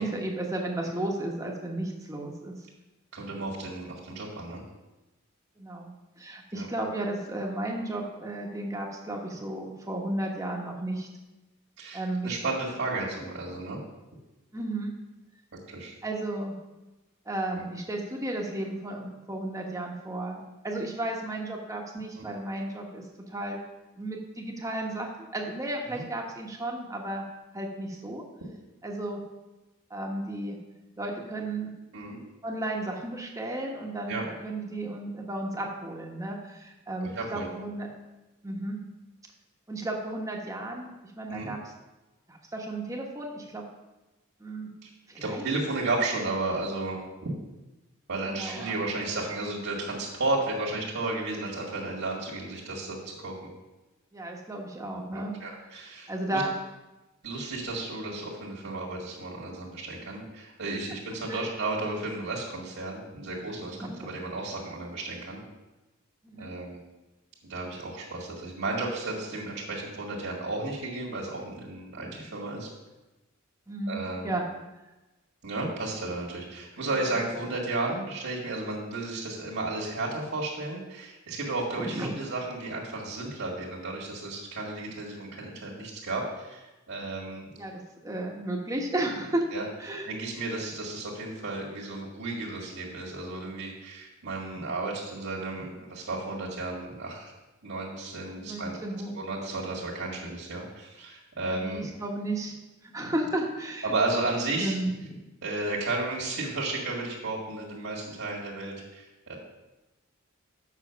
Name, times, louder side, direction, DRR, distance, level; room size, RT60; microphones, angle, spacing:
voice 1, 0.0-2.5 5.6-11.1 11.9-12.4 14.5-14.9 16.0-16.6 17.3-23.6 24.0-27.2 27.5-28.2 28.8-29.2 29.9-30.6 31.0-31.7 32.4-37.9 38.4-38.8 39.7-40.9 41.2-41.6 42.3-43.6 44.4-44.7 45.1-45.4 48.3-48.7 54.1-55.4 56.1-56.5 61.3-61.5 63.7-64.1 66.2-66.5 71.9-72.1 73.7-74.4 76.9-77.0 81.8-82.1 87.6-89.5 89.8-90.1 98.3-99.2 101.5-102.5 102.8-103.9 104.6-105.2, right 1 dB, 15° right, 0 dB, 1.2 m, -33 dB
voice 2, 3.1-4.6 6.5-6.7 11.8-13.8 15.7-15.9 17.5-17.6 22.2-22.3 25.9-26.0 31.9-32.2 34.1-34.3 37.0-37.5 41.3-41.5 44.8-44.9 45.2-47.3 48.1-53.4 54.9-56.4 57.2-65.4 66.4-66.8 67.5-72.7 73.9-74.4 75.4-87.5 89.5-89.7 90.1-97.3 97.6-98.8 99.1-101.9 103.8-104.7 105.4-109.4, right 2 dB, 65° right, -4 dB, 1.9 m, -33 dB
7.4 x 6.2 x 5.8 m, 1.1 s
head